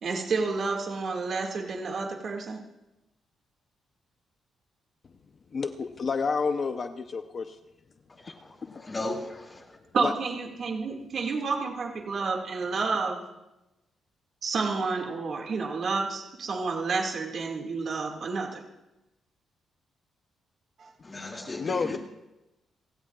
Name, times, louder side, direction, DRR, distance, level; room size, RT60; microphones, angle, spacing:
voice 1, 0.0-2.6 9.9-13.2 14.4-18.6 20.8-20.9 21.3-21.4, right 4 dB, 45° right, 1 dB, 2.0 m, -30 dB
voice 2, 5.5-7.6 8.6-8.9 10.0-10.1 21.6-22.0, left 5 dB, 35° left, 6 dB, 0.7 m, -30 dB
voice 3, 8.1-9.8 21.0-22.0, left 2 dB, 20° left, 1 dB, 2.5 m, -37 dB
30.0 x 16.5 x 2.4 m, 0.98 s
cardioid pair, 160°, 0 cm